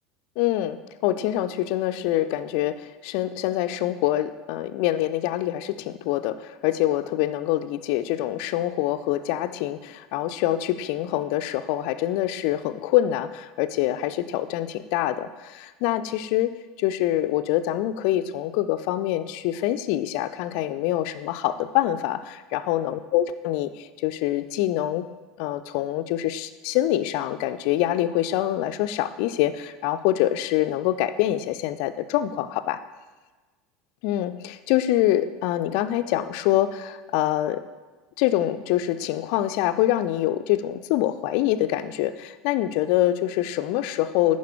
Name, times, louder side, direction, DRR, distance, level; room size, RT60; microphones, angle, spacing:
voice 1, 0.4-0.8 1.0-16.5 16.8-25.0 25.4-32.8 34.0-37.6 38.2-44.4, left 13 dB, 55° left, 12 dB, 0.3 m, -25 dB
10.5 x 3.8 x 3.5 m, 1.3 s
figure-of-eight pair, 75°, 0 cm